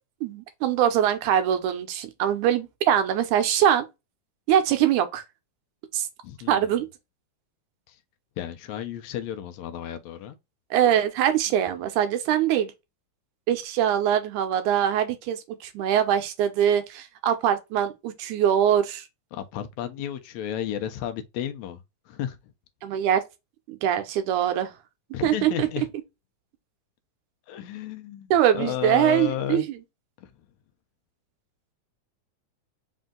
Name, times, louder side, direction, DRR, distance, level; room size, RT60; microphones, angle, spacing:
voice 1, 0.2-3.9 4.5-5.2 5.9-6.1 6.5-6.9 10.7-12.7 13.5-19.1 22.8-23.2 23.7-24.7 25.2-25.9 28.3-29.6, right 10 dB, 90° right, 2.3 m, -23 dB
voice 2, 6.2-6.7 7.9-8.0 8.4-10.4 19.3-21.8 22.1-22.4 25.1-25.9 27.5-28.3 28.5-29.7 30.2-30.3, left 10 dB, 75° left, 1.9 m, -33 dB
5.3 x 2.6 x 3.7 m
omnidirectional pair, 3.4 m